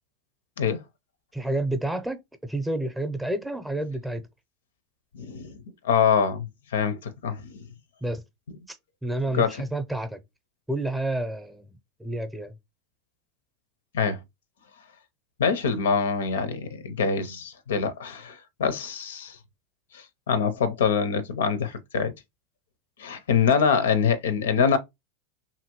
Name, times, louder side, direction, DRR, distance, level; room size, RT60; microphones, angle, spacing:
voice 1, 1.3-2.2 2.5-4.2 8.0-8.2 8.7-10.2 10.7-11.7 12.0-12.5, right 1 dB, 5° right, 0.6 m, -29 dB
voice 2, 5.1-7.6 9.3-9.7 13.9-14.2 15.4-19.4 19.9-22.1 23.0-24.8, left 6 dB, 85° left, 0.5 m, -25 dB
2.7 x 2.6 x 2.9 m
hypercardioid pair, 100°, 0 cm